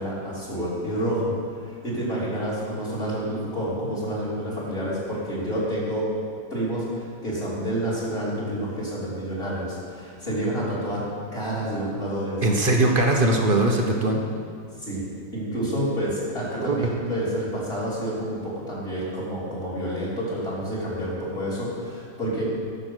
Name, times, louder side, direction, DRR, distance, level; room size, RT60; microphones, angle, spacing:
voice 1, 0.0-1.3 1.6-6.1 6.5-11.1 11.3-12.5 14.8-15.0 15.3-22.4, right 1 dB, 30° left, -8 dB, 3.3 m, -29 dB
voice 2, 12.4-14.2 16.6-16.8, right 2 dB, 40° right, 2 dB, 0.9 m, -21 dB
12.0 x 6.8 x 6.2 m, 2.3 s
omnidirectional pair, 1.9 m